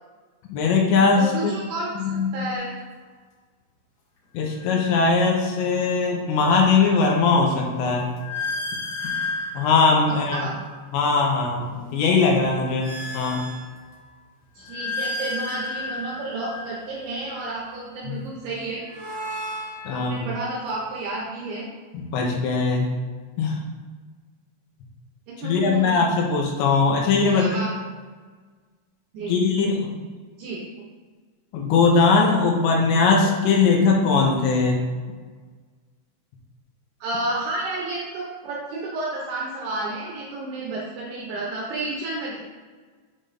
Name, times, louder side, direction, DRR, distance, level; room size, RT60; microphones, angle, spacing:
voice 1, 0.5-1.6 2.0-2.3 4.3-8.1 9.5-10.5 10.9-13.4 18.1-18.2 19.9-20.3 21.9-22.9 23.4-23.6 25.4-27.5 29.3-30.0 31.5-34.8, left 4 dB, 85° left, 0 dB, 3.0 m, -20 dB
voice 2, 1.2-2.0 2.3-2.7 10.3-10.6 14.6-18.8 19.9-21.7 25.3-26.0 27.2-27.7 29.1-29.4 30.4-30.6 37.0-42.4, right 2 dB, 80° right, -3 dB, 2.4 m, -31 dB
sound 1, 2.6-2.8 4.5-5.7 6.1-10.9 11.5-14.1 14.6-17.5 18.5-20.8, left 2 dB, 65° left, 1.6 m, -35 dB
7.7 x 5.1 x 2.6 m, 1.5 s
omnidirectional pair, 5.4 m